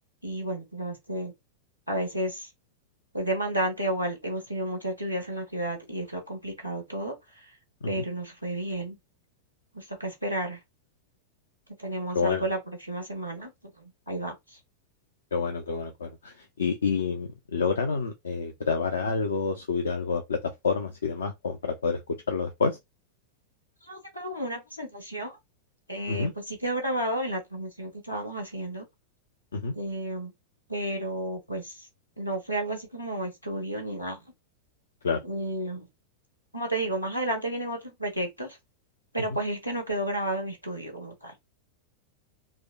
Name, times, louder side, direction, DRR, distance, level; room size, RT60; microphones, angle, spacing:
voice 1, 0.2-1.3 1.9-2.5 3.1-7.2 7.4-7.5 7.9-9.0 9.7-10.6 11.8-13.5 14.1-14.6 23.8-25.4 25.9-28.8 29.7-30.3 30.7-31.9 32.2-34.2 35.2-35.9 36.5-38.6 39.1-41.3, right 1 dB, 90° left, 1.1 m, -32 dB
voice 2, 12.1-12.5 15.3-22.0 22.3-22.8 26.1-26.3 29.5-29.7 35.0-35.2, left 5 dB, 70° left, 0.4 m, -28 dB
4.8 x 2.1 x 2.2 m
figure-of-eight pair, 90°, 0 cm